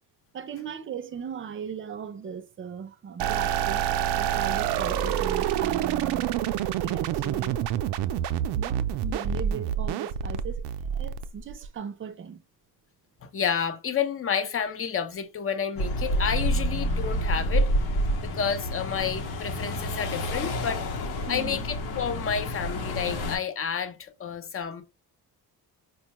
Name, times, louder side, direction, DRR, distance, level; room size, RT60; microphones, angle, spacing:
voice 1, 0.3-3.9 4.1-6.3 6.8-7.6 8.5-12.4 21.3-21.7, right 7 dB, 30° right, 0.6 m, -38 dB
sound 1, 3.2-11.7, right 10 dB, 80° right, 0.5 m, -27 dB
voice 2, 13.2-17.7 18.2-20.8 21.3-24.8, left 7 dB, 35° left, 0.7 m, -30 dB
sound 2, 15.8-23.4, equal, 70° left, 1.0 m, -28 dB
4.5 x 2.2 x 2.9 m
cardioid pair, 115°, 39 cm